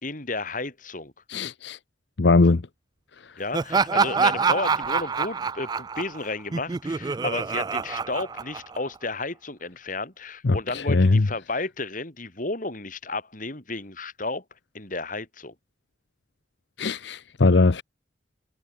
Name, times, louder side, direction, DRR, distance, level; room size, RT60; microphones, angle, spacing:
voice 1, 0.0-1.1 3.4-14.4 14.7-15.5, left 3 dB, 45° left, 3.7 m, -32 dB
voice 2, 1.3-1.8 2.2-2.6 10.4-11.3 16.8-17.8, left 3 dB, 70° left, 0.7 m, -20 dB
Laughter, 3.5-9.0, right 5 dB, 20° right, 0.3 m, -26 dB
head